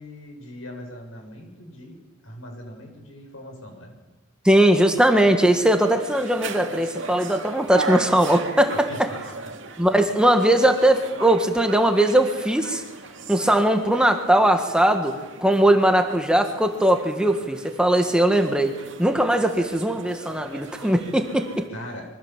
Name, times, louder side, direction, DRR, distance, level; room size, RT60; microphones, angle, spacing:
voice 1, 0.0-1.9 2.2-3.9 8.9-9.0 21.7-22.0, left 1 dB, 75° left, 3 dB, 7.2 m, -40 dB
voice 2, 4.4-8.9 9.8-12.8 13.3-18.7 19.0-21.6, right 1 dB, 5° right, 5 dB, 1.6 m, -20 dB
sound 1, 5.4-21.7, right 3 dB, 60° right, 2.7 m, -37 dB
26.0 x 24.0 x 7.5 m, 1.2 s
head